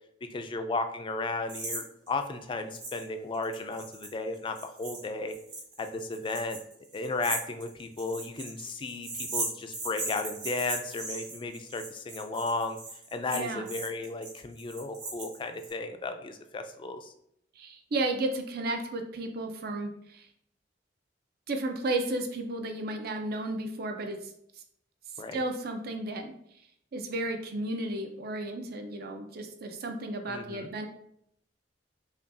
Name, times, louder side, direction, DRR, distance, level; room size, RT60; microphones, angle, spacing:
voice 1, 0.3-5.4 5.8-6.6 6.9-12.8 13.1-17.1 25.2-25.4 30.3-30.7, left 3 dB, 30° left, 7 dB, 0.3 m, -34 dB
sound 1, 1.5-1.8 2.1-2.2 2.7-3.0 3.3-15.7, right 2 dB, 75° right, 1.4 m, -38 dB
voice 2, 13.3-13.7 17.6-20.3 21.5-24.2 25.3-26.3 26.9-30.9, right 2 dB, 55° right, 5 dB, 0.5 m, -33 dB
5.1 x 2.3 x 2.5 m, 0.73 s
head